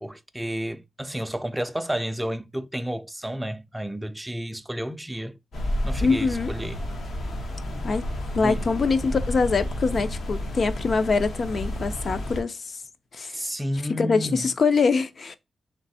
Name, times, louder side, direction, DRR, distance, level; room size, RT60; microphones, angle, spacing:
voice 1, 0.0-5.4 5.8-6.8 8.4-8.6 13.3-14.5, equal, 10° right, 0.4 m, -31 dB
sound 1, 5.5-12.4, left 1 dB, 85° left, 1.1 m, -31 dB
voice 2, 6.0-6.5 7.8-8.1 8.4-12.8 13.1-13.4 14.0-15.4, left 4 dB, 50° left, 0.5 m, -24 dB
3.4 x 3.2 x 4.1 m
wide cardioid pair, 105°, 0 cm